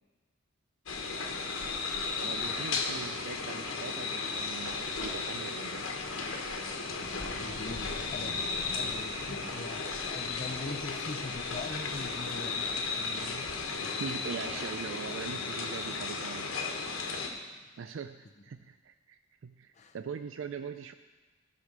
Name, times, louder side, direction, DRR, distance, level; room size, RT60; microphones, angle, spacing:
sound 1, 0.9-17.3, left 4 dB, 80° left, 1.3 m, -35 dB
voice 1, 2.2-6.0 14.0-16.5 17.8-20.9, right 6 dB, 65° right, 9 dB, 0.4 m, -42 dB
voice 2, 7.3-8.4 8.8-13.5 17.2-17.4 19.7-20.0, left 3 dB, 35° left, 4 dB, 0.5 m, -43 dB
15.0 x 5.0 x 6.5 m, 1.3 s
head